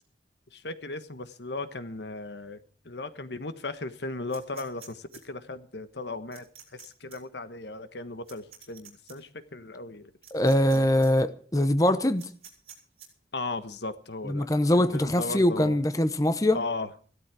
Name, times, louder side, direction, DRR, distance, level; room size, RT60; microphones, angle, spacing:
voice 1, 0.5-6.5 6.7-10.1 13.3-14.5 14.9-15.8 16.5-16.9, left 2 dB, 80° left, 1.3 m, -36 dB
sound 1, 4.3-5.2 6.3-6.9 7.1-7.2 8.3-9.1 10.2-10.8 11.0-11.1 12.2-13.1, right 8 dB, 35° right, 5.3 m, -48 dB
voice 2, 10.3-12.3 14.2-16.6, left 1 dB, 20° left, 0.8 m, -23 dB
16.0 x 13.0 x 4.8 m
head